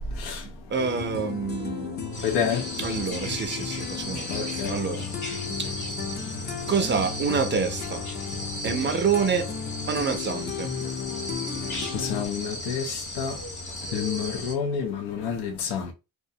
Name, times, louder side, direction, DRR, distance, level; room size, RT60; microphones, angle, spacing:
voice 1, 0.4-2.0 2.8-5.1 5.6-5.7 6.7-8.1 8.6-9.5 9.9-10.7, right 6 dB, 30° right, 0.4 m, -27 dB
sound 1, 0.8-12.3, left 6 dB, 25° left, 0.5 m, -34 dB
sound 2, 2.1-14.5, left 1 dB, 45° left, 1.0 m, -36 dB
voice 2, 2.2-2.6 4.3-4.7 11.9-13.3 13.9-15.9, left 7 dB, 80° left, 0.6 m, -29 dB
2.4 x 2.1 x 2.6 m
cardioid pair, 120°, 40 cm